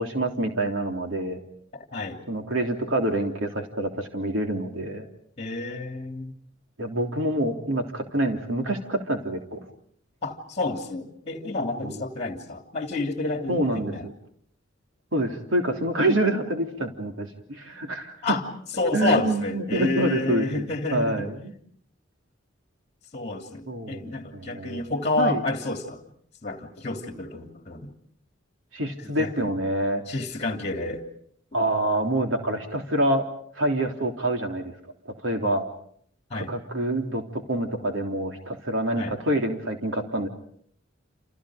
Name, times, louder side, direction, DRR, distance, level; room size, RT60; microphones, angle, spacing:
voice 1, 0.0-1.4 2.3-5.1 6.8-9.6 11.8-12.0 13.5-14.1 15.1-18.4 18.9-20.6 20.9-21.5 23.7-24.8 25.2-25.4 28.7-30.0 31.5-33.3 33.5-34.7 35.0-35.6 36.3-40.3, right 1 dB, 75° right, 3 dB, 3.4 m, -26 dB
voice 2, 1.7-2.2 5.4-6.3 10.2-14.1 18.2-18.4 18.8-21.3 23.1-26.0 26.4-27.9 29.2-29.5 30.1-31.0 36.3-36.5 39.0-39.1, left 2 dB, 35° left, 4 dB, 3.0 m, -29 dB
30.0 x 28.5 x 5.1 m, 0.63 s
head